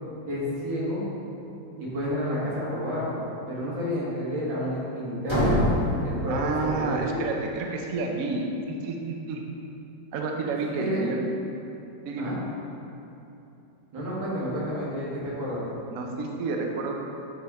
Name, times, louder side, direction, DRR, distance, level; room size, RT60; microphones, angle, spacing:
voice 1, 0.3-1.0 1.8-5.5 6.0-7.2 10.6-11.0 12.2-12.4 13.9-15.6, equal, 90° right, -7 dB, 2.4 m, -30 dB
sound 1, 5.3-7.1, equal, 20° left, 1.0 m, -26 dB
voice 2, 6.3-9.4 10.1-11.2 12.1-12.3 15.9-17.0, right 3 dB, 65° right, 1 dB, 0.8 m, -30 dB
8.6 x 3.5 x 4.0 m, 2.8 s
omnidirectional pair, 2.1 m